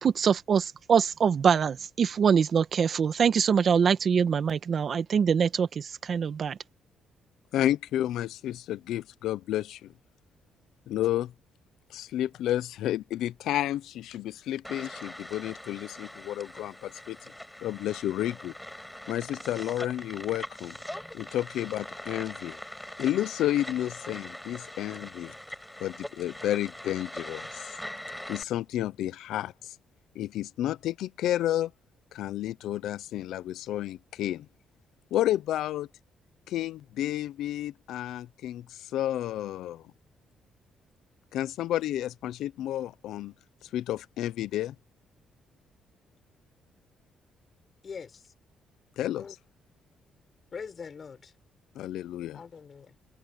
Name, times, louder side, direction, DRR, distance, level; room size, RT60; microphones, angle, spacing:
voice 1, 0.0-6.6, right 7 dB, 50° right, 1.5 m, -24 dB
voice 2, 7.5-9.9 10.9-11.3 11.9-17.2 17.6-18.5 19.1-20.8 21.1-22.6 23.0-25.3 25.8-27.7 28.3-29.7 30.1-31.7 32.1-34.5 35.1-35.9 36.5-39.8 41.3-43.3 43.6-44.7 49.0-49.3 51.7-52.4, left 13 dB, 85° left, 0.8 m, -31 dB
sound 1, 14.6-28.4, left 1 dB, 5° left, 5.7 m, -42 dB
voice 3, 47.8-48.3 49.2-49.3 50.5-51.3 52.3-52.9, left 6 dB, 45° left, 5.8 m, -42 dB
cardioid pair, 90°, 0 cm